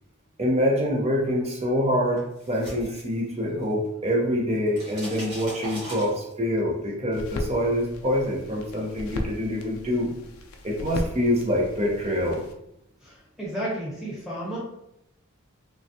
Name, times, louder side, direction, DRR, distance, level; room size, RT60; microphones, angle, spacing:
voice 1, 0.4-10.1 10.6-12.4, equal, 30° right, -2 dB, 0.7 m, -25 dB
sound 1, 2.2-3.9 4.1-6.6, right 1 dB, 85° right, 1.3 m, -40 dB
sound 2, 7.1-12.5, left 1 dB, 90° left, 0.4 m, -37 dB
voice 2, 13.0-14.6, right 1 dB, ahead, -7 dB, 1.2 m, -32 dB
3.3 x 2.3 x 2.7 m, 0.81 s
head